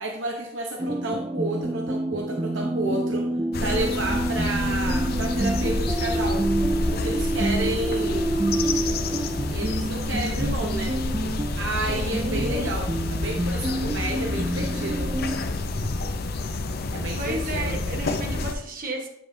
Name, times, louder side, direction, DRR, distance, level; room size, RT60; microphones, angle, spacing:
voice 1, 0.0-3.3 3.6-6.4 6.9-8.3 9.5-11.0 11.6-15.1 16.9-17.8, right 2 dB, 65° right, 1 dB, 0.9 m, -31 dB
sound 1, 0.8-15.4, right 1 dB, 15° right, 0.4 m, -28 dB
sound 2, 3.5-18.5, left 2 dB, 50° left, 0.6 m, -29 dB
voice 2, 12.2-12.7 17.2-19.1, right 1 dB, 45° right, 2 dB, 1.3 m, -32 dB
8.9 x 7.6 x 2.7 m, 0.76 s
head